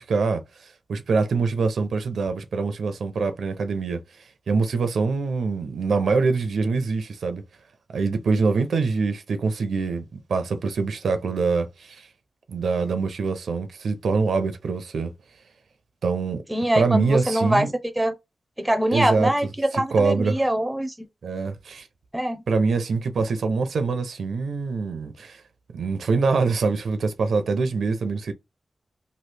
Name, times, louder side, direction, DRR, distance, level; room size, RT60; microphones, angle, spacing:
voice 1, 0.0-4.0 4.5-7.4 7.9-12.1 12.5-15.1 16.0-16.4 16.8-17.7 18.9-19.3 19.7-20.4 21.2-21.9 22.5-25.4 25.7-28.3, right 4 dB, 85° right, 0.6 m, -24 dB
voice 2, 16.5-17.7 18.0-18.1 18.6-21.1 22.1-22.4, right 1 dB, 10° right, 0.5 m, -23 dB
3.1 x 2.4 x 3.2 m
wide cardioid pair, 160°, 0 cm